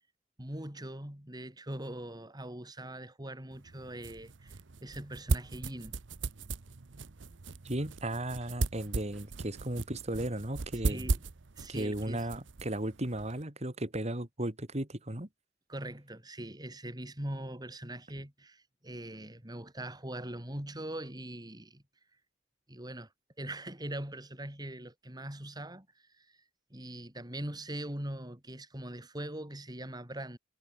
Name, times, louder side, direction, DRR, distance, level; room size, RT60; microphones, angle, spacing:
voice 1, 0.4-6.0 10.9-11.2 11.6-12.3 15.7-21.8 22.7-23.1 23.4-25.9 26.2-26.3 26.7-30.4, right 1 dB, 20° right, 4.5 m, -41 dB
sound 1, 3.5-13.4, right 3 dB, 90° right, 0.9 m, -37 dB
voice 2, 7.6-11.1 11.7-15.3, right 1 dB, 35° right, 3.0 m, -35 dB
head